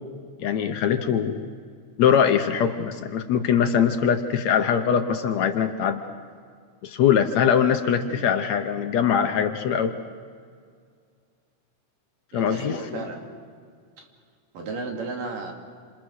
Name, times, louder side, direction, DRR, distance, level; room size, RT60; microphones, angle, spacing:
voice 1, 0.4-1.5 2.0-6.0 6.8-9.9 12.3-13.0, left 8 dB, 65° left, 7 dB, 2.0 m, -22 dB
voice 2, 12.3-13.3 14.0-14.1 14.5-15.5, right 3 dB, 80° right, 2 dB, 4.2 m, -34 dB
28.5 x 27.0 x 6.4 m, 2.1 s
omnidirectional pair, 3.8 m